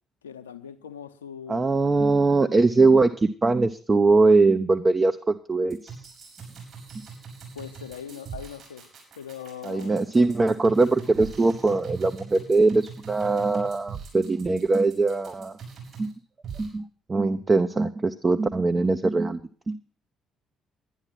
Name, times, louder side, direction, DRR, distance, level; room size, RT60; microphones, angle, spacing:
voice 1, 0.2-1.7 7.5-8.9 9.2-10.0, left 8 dB, 80° left, 0.8 m, -40 dB
voice 2, 1.5-6.0 9.6-15.5 16.0-16.1 16.5-16.8 17.1-19.4 19.7-19.8, right 3 dB, 25° right, 0.7 m, -21 dB
sound 1, 5.7-16.1 16.4-16.7, right 6 dB, 55° right, 6.7 m, -42 dB
11.5 x 10.5 x 5.8 m
figure-of-eight pair, 45°, 0 cm